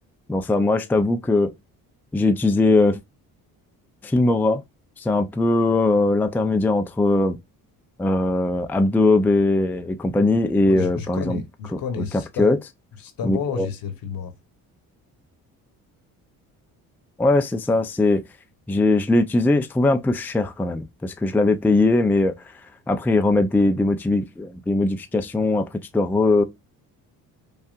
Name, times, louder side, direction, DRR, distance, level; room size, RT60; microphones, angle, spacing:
voice 1, 0.3-1.5 2.1-3.0 4.0-4.6 5.0-7.4 8.0-11.4 12.0-12.1 12.4-12.6 13.2-13.7 17.2-18.2 18.7-22.5 22.9-26.4, left 2 dB, 5° left, 0.4 m, -20 dB
voice 2, 10.6-12.6 13.0-14.3, left 6 dB, 65° left, 1.1 m, -31 dB
5.4 x 2.4 x 2.4 m
supercardioid pair, 70°, 38 cm